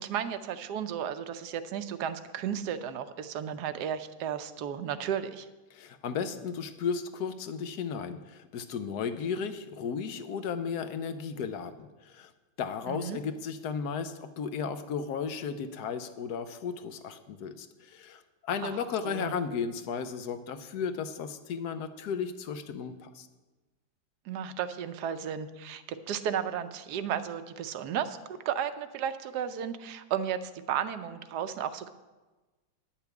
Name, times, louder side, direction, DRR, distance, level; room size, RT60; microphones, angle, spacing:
voice 1, 0.0-5.5 12.9-13.2 18.6-18.8 19.0-19.3 24.3-31.9, right 8 dB, 70° right, 11 dB, 1.1 m, -34 dB
voice 2, 5.7-12.3 12.6-23.3, left 6 dB, 65° left, 10 dB, 1.2 m, -35 dB
10.5 x 5.9 x 8.1 m, 1.2 s
omnidirectional pair, 2.0 m